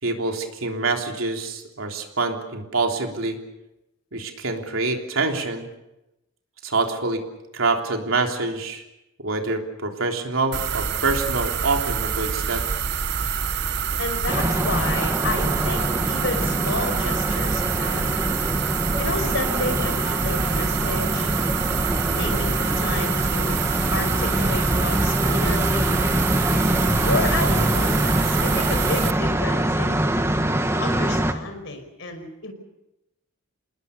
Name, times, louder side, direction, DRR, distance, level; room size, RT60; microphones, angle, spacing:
voice 1, 0.0-3.4 4.1-5.7 6.6-7.2 7.5-8.8 9.2-12.6 26.7-27.0, right 3 dB, 85° right, 3 dB, 3.5 m, -26 dB
sound 1, 10.5-29.1, right 7 dB, 60° right, 0.8 m, -26 dB
voice 2, 14.0-18.2 19.0-21.3 22.1-23.5 23.9-25.9 27.0-30.0 30.8-32.5, left 3 dB, 65° left, 6 dB, 5.1 m, -31 dB
sound 2, 14.3-31.3, right 1 dB, 15° right, 1.4 m, -24 dB
28.0 x 20.0 x 6.7 m, 0.93 s
head